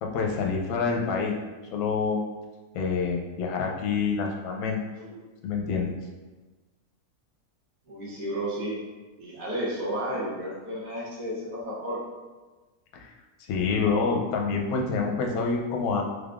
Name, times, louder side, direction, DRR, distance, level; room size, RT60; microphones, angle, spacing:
voice 1, 0.0-1.4 1.7-2.2 2.7-4.8 5.4-5.9 12.9-13.1 13.5-16.0, left 5 dB, 75° left, 0 dB, 1.0 m, -27 dB
voice 2, 7.9-8.8 9.2-12.0, equal, 65° right, -7 dB, 1.4 m, -32 dB
3.6 x 3.5 x 2.4 m, 1.3 s
omnidirectional pair, 1.6 m